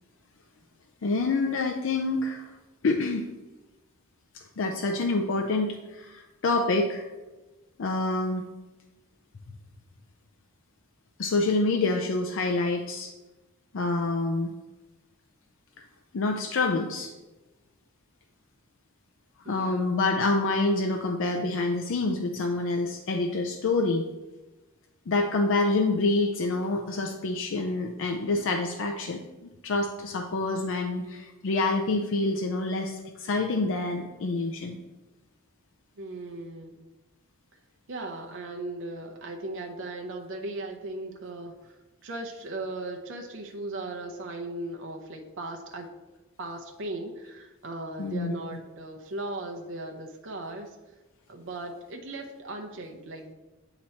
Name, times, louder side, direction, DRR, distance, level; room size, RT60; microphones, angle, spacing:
voice 1, 1.0-2.5 2.8-3.2 4.3-7.1 7.8-8.4 11.2-13.1 13.7-14.5 16.1-17.1 19.5-24.1 25.1-34.8 48.0-48.3, left 3 dB, 65° left, 3 dB, 0.5 m, -27 dB
voice 2, 19.4-20.0 36.0-36.8 37.9-45.9 46.4-50.8 51.3-53.3, right 2 dB, 60° right, 2 dB, 0.6 m, -37 dB
8.8 x 3.0 x 4.2 m, 1.1 s
head